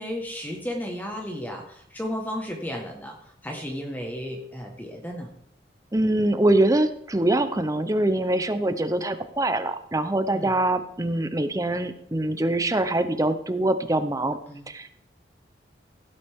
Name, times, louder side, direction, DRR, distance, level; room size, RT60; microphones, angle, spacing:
voice 1, 0.0-5.3 10.3-10.5 14.5-14.7, equal, 10° left, 1 dB, 1.4 m, -34 dB
voice 2, 5.9-14.4 14.7-14.9, right 1 dB, 20° right, 10 dB, 0.7 m, -24 dB
16.0 x 8.4 x 3.6 m, 0.70 s
head